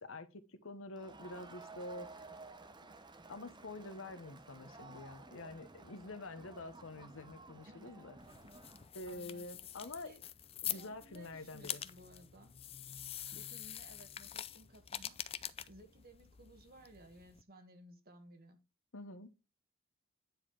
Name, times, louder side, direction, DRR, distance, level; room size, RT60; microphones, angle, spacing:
voice 1, 0.0-2.1 3.3-8.2 8.9-10.1 10.7-11.8 18.9-19.3, left 2 dB, 65° left, 1.0 m, -47 dB
Crowd, 0.9-8.9, right 3 dB, 20° right, 0.8 m, -54 dB
voice 2, 7.7-8.1 9.1-9.5 9.8-10.2 10.6-12.5 13.3-15.2 15.7-18.6, right 1 dB, 45° right, 1.4 m, -58 dB
sound 1, 8.2-17.4, left 10 dB, 25° left, 0.4 m, -45 dB
9.7 x 4.3 x 4.7 m
head